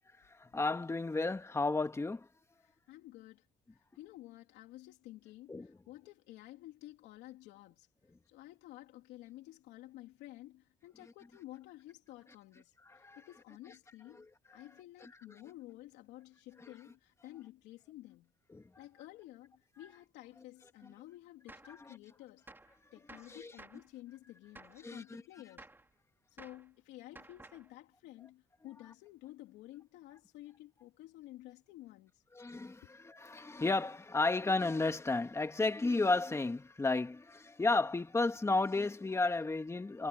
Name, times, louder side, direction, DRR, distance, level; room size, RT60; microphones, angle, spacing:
voice 1, 0.4-2.3 5.5-5.7 12.9-13.2 14.2-14.3 18.5-18.6 21.9-22.0 23.3-23.5 24.8-25.2 32.3-40.1, left 3 dB, 15° left, 2.3 m, -33 dB
voice 2, 2.6-3.4 3.7-7.9 8.3-14.2 14.5-18.3 18.8-22.4 22.9-25.6 26.3-32.2 32.8-32.9, left 16 dB, 90° left, 3.2 m, -52 dB
Gunshot gunfire, 21.5-21.8 22.5-22.8 23.1-23.9 24.6-24.9 25.6-25.9 26.4-26.7 27.2-27.7, right 2 dB, 10° right, 3.4 m, -54 dB
cardioid pair, 110°, 17 cm